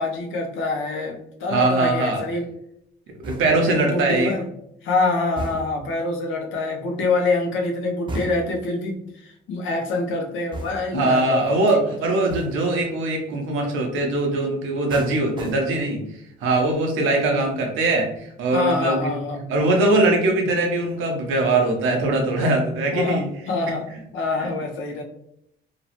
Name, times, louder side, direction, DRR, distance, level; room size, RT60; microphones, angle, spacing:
voice 1, 0.0-2.5 3.7-4.5 4.8-12.1 17.2-17.5 18.5-19.5 20.4-20.6 22.9-23.9 24.1-25.0, left 3 dB, 80° left, 3 dB, 0.6 m, -26 dB
voice 2, 1.5-2.2 3.2-4.3 10.9-16.0 16.4-19.1 19.5-23.2, right 2 dB, 85° right, 2 dB, 0.7 m, -21 dB
sound 1, 3.2-3.8 5.4-5.9 8.1-8.7 10.5-11.1 12.3-12.8 14.9-16.0 16.4-16.8, right 1 dB, 25° right, 0.6 m, -35 dB
3.0 x 2.0 x 2.8 m, 0.75 s
cardioid pair, 90°, 20 cm